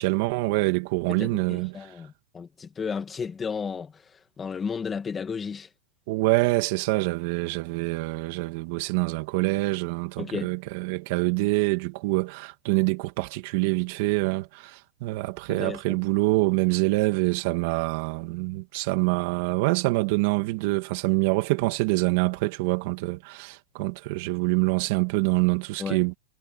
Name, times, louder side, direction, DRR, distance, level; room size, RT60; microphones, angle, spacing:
voice 1, 0.0-1.9 6.1-26.1, right 22 dB, 50° right, 2.5 m, -25 dB
voice 2, 1.1-5.7 10.2-10.6 15.5-16.0 25.8-26.0, left 6 dB, 15° left, 2.3 m, -33 dB
supercardioid pair, 155°, 0 cm